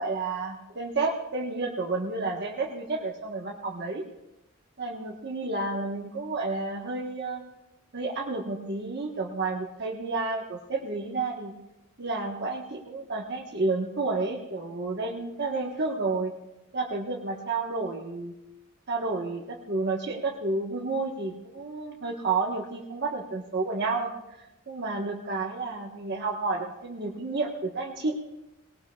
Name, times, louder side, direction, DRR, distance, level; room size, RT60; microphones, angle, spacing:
voice 1, 0.0-4.0 4.8-7.4 7.9-11.5 12.0-16.3 16.7-18.3 18.9-24.1 24.7-28.2, right 3 dB, 55° right, -3 dB, 1.3 m, -30 dB
20.0 x 18.5 x 2.3 m, 0.95 s
head